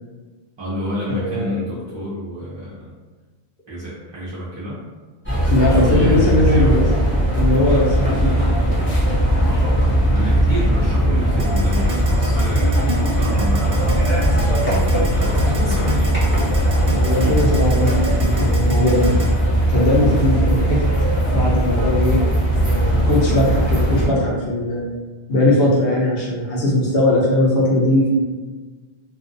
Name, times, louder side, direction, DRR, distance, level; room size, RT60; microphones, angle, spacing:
voice 1, 0.6-2.9 3.7-4.8 5.6-6.8 9.4-9.8 10.1-13.9 14.7-16.2, equal, 35° right, -9 dB, 0.5 m, -30 dB
voice 2, 1.1-1.6 5.5-7.0 7.4-8.3 16.9-19.3 19.7-20.8 21.3-22.3 22.6-24.8 25.3-28.2, left 1 dB, 60° left, -5 dB, 0.9 m, -19 dB
sound 1, 5.3-24.1, equal, 10° left, 0.7 m, -18 dB
Keyboard (musical), 11.4-19.3, right 3 dB, 55° right, 0.8 m, -30 dB
2.5 x 2.3 x 2.5 m, 1.4 s
omnidirectional pair, 1.1 m